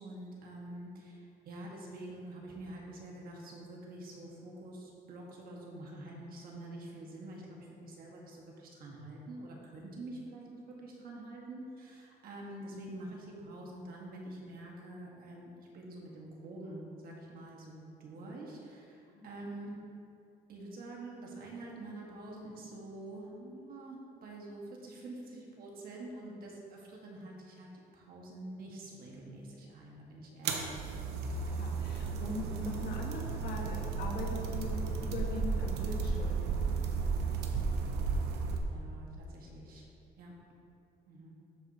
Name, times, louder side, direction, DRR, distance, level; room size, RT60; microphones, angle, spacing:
voice 1, 0.0-19.8 20.5-30.8 38.7-39.9 40.2-40.3 41.1-41.4, right 1 dB, 60° right, -2 dB, 1.6 m, -46 dB
sound 1, 30.4-38.6, right 5 dB, 80° right, 0.8 m, -34 dB
voice 2, 31.4-36.4, left 3 dB, 70° left, 0 dB, 1.4 m, -41 dB
13.0 x 5.0 x 2.9 m, 2.7 s
cardioid pair, 110°, 17 cm